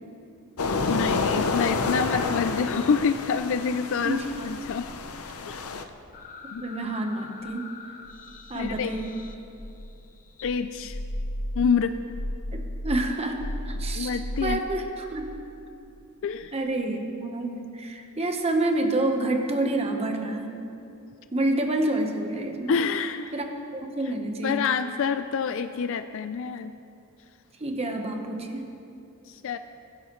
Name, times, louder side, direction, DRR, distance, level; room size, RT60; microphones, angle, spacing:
sound 1, 0.6-5.8, left 4 dB, 90° left, 0.7 m, -29 dB
voice 1, 0.9-4.9 5.5-5.7 6.5-6.6 8.5-8.9 10.4-11.0 11.6-12.0 13.9-14.6 16.2-16.5 22.7-23.3 24.4-26.7 29.3-29.6, left 6 dB, 60° left, 10 dB, 0.4 m, -27 dB
sound 2, 6.1-10.0 10.4-14.6, left 1 dB, 40° left, 0.7 m, -35 dB
voice 2, 6.6-7.6 8.5-9.2 12.5-13.4 13.7-15.3 16.5-20.6 21.3-22.8 23.3-23.5 23.7-24.8 27.6-28.7, right 2 dB, 30° right, 3 dB, 1.1 m, -28 dB
21.0 x 11.0 x 3.1 m, 2.7 s
head